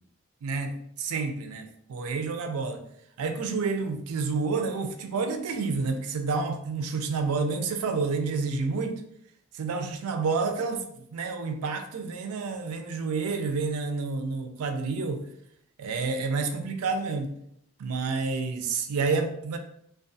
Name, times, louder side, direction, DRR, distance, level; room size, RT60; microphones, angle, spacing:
voice 1, 0.4-2.8 3.2-9.0 9.5-15.3 15.8-17.3 17.8-19.6, right 4 dB, 85° right, 6 dB, 0.4 m, -29 dB
2.3 x 2.2 x 2.5 m, 0.73 s
head